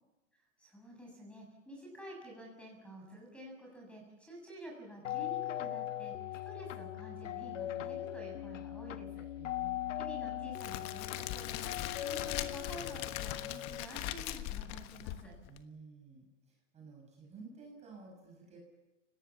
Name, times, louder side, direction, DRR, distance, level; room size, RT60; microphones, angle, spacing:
voice 1, 0.6-6.1 6.4-9.3 10.0-15.4, right 1 dB, 5° left, 1 dB, 7.0 m, -50 dB
sound 1, 5.0-13.8, left 12 dB, 80° left, 1.3 m, -40 dB
voice 2, 9.4-9.9 15.5-18.6, right 4 dB, 20° right, 0 dB, 6.6 m, -53 dB
Crackle, 10.5-15.6, left 14 dB, 35° left, 1.3 m, -40 dB
30.0 x 18.0 x 7.1 m, 1.1 s
hypercardioid pair, 145°, 37 cm